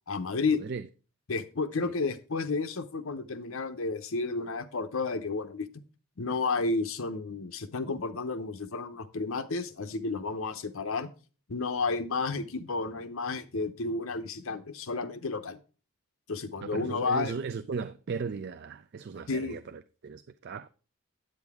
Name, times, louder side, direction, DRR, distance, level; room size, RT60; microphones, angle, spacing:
voice 1, 0.1-0.6 1.3-5.7 6.2-11.1 11.5-15.6 16.3-17.3 19.3-19.6, left 4 dB, 70° left, 0.7 m, -31 dB
voice 2, 16.6-20.7, right 5 dB, 50° right, 0.3 m, -37 dB
8.6 x 7.9 x 3.5 m
head